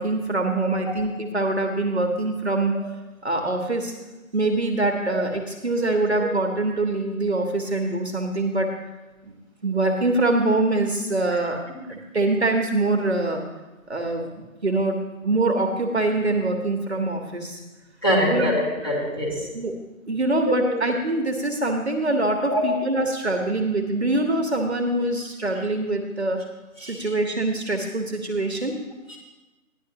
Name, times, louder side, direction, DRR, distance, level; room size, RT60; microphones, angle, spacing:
voice 1, 0.0-2.7 3.2-3.9 4.3-8.8 9.2-9.3 9.6-11.6 11.9-13.4 13.9-17.6 18.2-18.5 19.5-19.8 20.1-26.4 26.8-28.8, right 2 dB, 50° right, 2 dB, 1.1 m, -24 dB
voice 2, 18.0-19.5 20.5-20.8 22.5-22.7 26.8-27.1 29.1-29.2, equal, 15° left, -7 dB, 2.0 m, -24 dB
15.0 x 11.0 x 2.8 m, 1.1 s
figure-of-eight pair, 175°, 43 cm